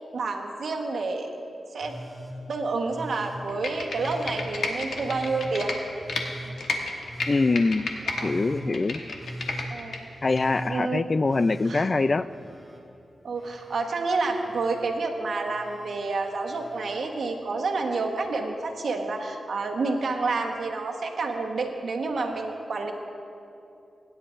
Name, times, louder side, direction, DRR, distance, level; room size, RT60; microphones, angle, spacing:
voice 1, 0.1-1.3 1.7-2.0 2.5-5.7 6.4-6.5 8.0-8.3 8.7-8.8 9.7-10.0 10.7-11.2 11.6-11.9 13.2-22.9, right 3 dB, 75° right, 2 dB, 1.2 m, -29 dB
Telephone, 1.8-2.4 2.8-3.4 3.9-4.4 5.0-5.5 6.0-6.5 7.0-7.6 8.1-8.6 9.1-9.7 10.2-10.7 11.2-12.8 13.1-13.8 14.4-14.9 15.4-15.9 16.5-17.0 18.2-18.3, right 1 dB, 5° left, 2.9 m, -40 dB
Computer keyboard, 3.5-6.2 6.6-8.2 8.6-10.0 10.4-10.5, left 3 dB, 80° left, 1.2 m, -31 dB
voice 2, 7.3-7.9 8.2-9.0 10.2-12.3, left 3 dB, 45° left, 15 dB, 0.3 m, -24 dB
21.0 x 10.0 x 2.6 m, 2.7 s
cardioid pair, 55°, 0 cm